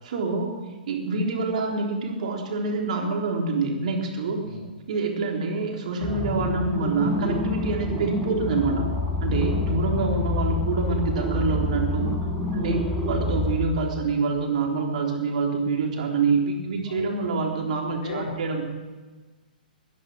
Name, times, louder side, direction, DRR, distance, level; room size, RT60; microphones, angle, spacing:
voice 1, 0.1-0.5 0.9-4.4 4.9-8.9 9.2-12.1 12.5-18.6, right 4 dB, 55° right, 1 dB, 3.8 m, -26 dB
sound 1, 6.0-13.6, left 2 dB, 5° left, 6.2 m, -27 dB
voice 2, 17.9-18.4, left 3 dB, 60° left, -1 dB, 3.1 m, -36 dB
21.0 x 11.0 x 6.3 m, 1.3 s
figure-of-eight pair, 120°, 5 cm